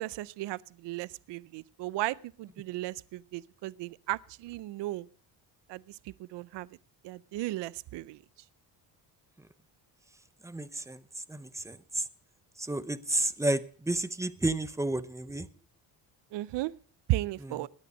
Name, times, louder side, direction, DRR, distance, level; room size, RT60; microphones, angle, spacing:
voice 1, 0.0-5.1 5.7-6.7 7.0-8.2 16.3-16.7 17.1-17.7, right 17 dB, 70° right, 21 dB, 0.6 m, -35 dB
voice 2, 10.4-11.0 11.3-12.0 12.7-15.5, right 2 dB, 5° right, 15 dB, 0.6 m, -31 dB
17.5 x 9.8 x 5.3 m, 0.43 s
cardioid pair, 130°, 45 cm